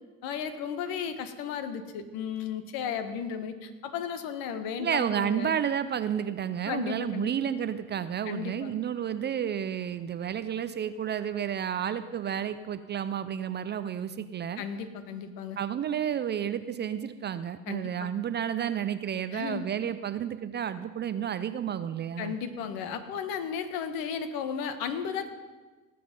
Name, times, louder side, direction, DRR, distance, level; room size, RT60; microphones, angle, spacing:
voice 1, 0.2-5.6 6.6-7.3 8.2-8.7 14.6-15.6 17.7-18.1 19.3-19.7 22.2-25.3, left 7 dB, 55° left, 10 dB, 1.5 m, -34 dB
voice 2, 4.8-14.6 15.6-22.4, right 9 dB, 25° right, 12 dB, 0.5 m, -31 dB
18.0 x 7.7 x 5.3 m, 1.3 s
hypercardioid pair, 80°, 41 cm